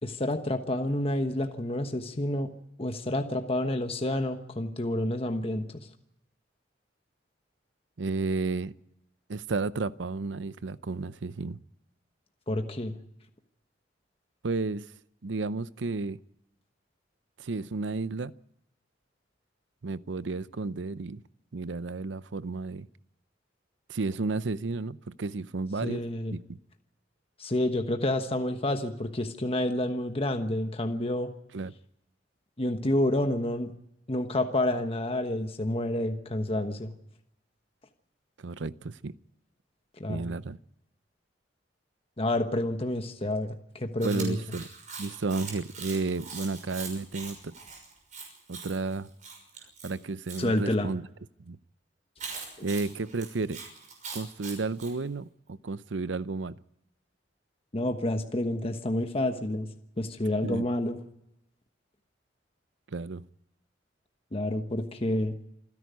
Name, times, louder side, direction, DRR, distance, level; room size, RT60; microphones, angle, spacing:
voice 1, 0.0-2.5 2.8-5.9 12.5-13.0 25.8-26.4 27.4-31.3 32.6-33.7 34.1-36.9 40.0-40.2 42.2-44.4 50.4-50.9 57.7-59.7 60.0-61.0 64.3-65.4, left 1 dB, 30° left, 6 dB, 1.2 m, -29 dB
voice 2, 8.0-8.7 9.3-11.6 14.4-14.9 15.2-16.2 17.4-18.3 19.8-21.2 21.5-22.9 23.9-26.0 26.3-26.4 31.5-31.7 38.4-39.2 40.1-40.6 44.0-44.7 45.0-47.5 48.5-49.1 49.8-51.1 51.5-51.6 52.6-53.6 54.1-56.6 60.4-60.7 62.9-63.3, right 3 dB, 85° right, 16 dB, 0.7 m, -32 dB
Chewing mastication, 44.0-50.4 52.2-54.9, right 5 dB, 45° right, 5.9 m, -42 dB
27.5 x 11.0 x 9.4 m, 0.84 s
head